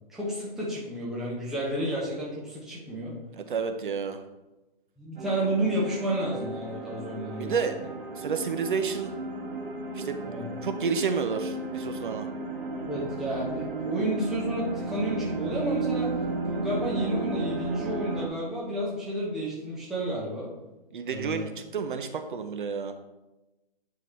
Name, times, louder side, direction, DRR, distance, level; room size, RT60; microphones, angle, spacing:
voice 1, 0.1-3.1 5.0-7.5 10.2-10.4 12.9-16.1 16.4-20.5 21.0-21.4, right 1 dB, ahead, -7 dB, 0.8 m, -31 dB
voice 2, 3.4-4.2 7.4-7.8 8.2-9.1 9.9-10.3 10.6-12.3 20.9-22.9, right 6 dB, 60° right, 7 dB, 0.7 m, -30 dB
sound 1, 5.2-18.3, right 3 dB, 80° right, 1.8 m, -34 dB
9.3 x 3.8 x 3.1 m, 1.0 s
hypercardioid pair, 150°, 29 cm